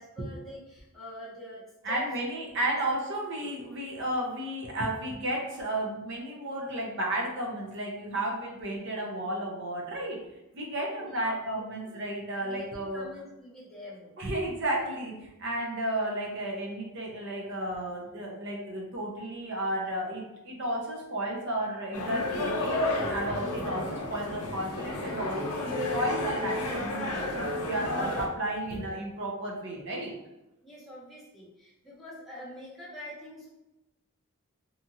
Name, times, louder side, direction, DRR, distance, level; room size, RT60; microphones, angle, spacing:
voice 1, 0.0-2.1 2.7-2.8 3.4-3.5 11.0-12.0 12.4-14.1 30.6-33.5, left 1 dB, ahead, -10 dB, 0.9 m, -45 dB
voice 2, 1.8-10.2 10.5-13.1 14.2-22.8 23.1-30.1, right 1 dB, 55° right, -2 dB, 0.7 m, -33 dB
sound 1, 21.9-28.3, left 2 dB, 85° left, 0.5 m, -31 dB
2.8 x 2.4 x 2.7 m, 0.95 s
head